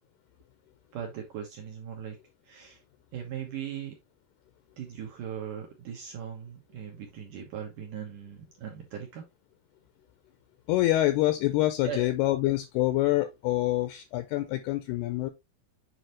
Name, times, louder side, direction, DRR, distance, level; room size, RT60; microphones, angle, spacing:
voice 1, 0.9-2.2 2.4-2.8 3.1-4.0 4.8-9.3 11.8-12.1, right 8 dB, 70° right, 2.1 m, -39 dB
voice 2, 10.7-15.3, left 16 dB, 80° left, 2.4 m, -26 dB
7.9 x 5.0 x 3.0 m
omnidirectional pair, 5.2 m